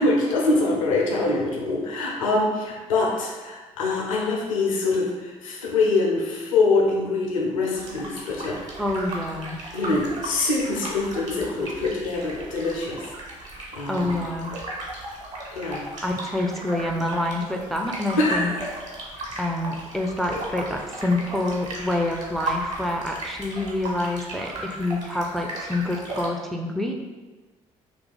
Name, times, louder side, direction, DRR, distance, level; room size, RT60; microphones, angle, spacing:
voice 1, 0.0-8.6 9.7-13.1 13.4-14.1 15.6-15.8 18.2-18.7, left 3 dB, 80° left, -2 dB, 0.6 m, -24 dB
sound 1, 7.8-26.3, right 1 dB, 45° right, 1.2 m, -36 dB
voice 2, 8.8-9.6 13.9-14.6 16.0-18.5 19.4-27.0, left 1 dB, ahead, 2 dB, 0.4 m, -27 dB
2.8 x 2.5 x 3.9 m, 1.3 s
figure-of-eight pair, 50°, 17 cm